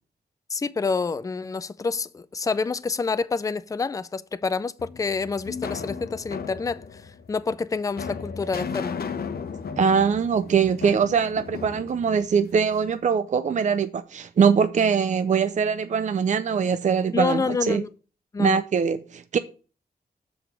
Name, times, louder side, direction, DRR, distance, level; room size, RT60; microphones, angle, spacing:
voice 1, 0.5-7.0 7.3-9.0 17.1-17.9 18.3-18.6, left 4 dB, 20° left, 0.4 m, -27 dB
sound 1, 4.8-12.9, left 6 dB, 70° left, 0.9 m, -36 dB
voice 2, 9.8-17.8 18.4-19.4, right 6 dB, 50° right, 0.5 m, -22 dB
7.1 x 4.9 x 5.9 m
wide cardioid pair, 110°, 16 cm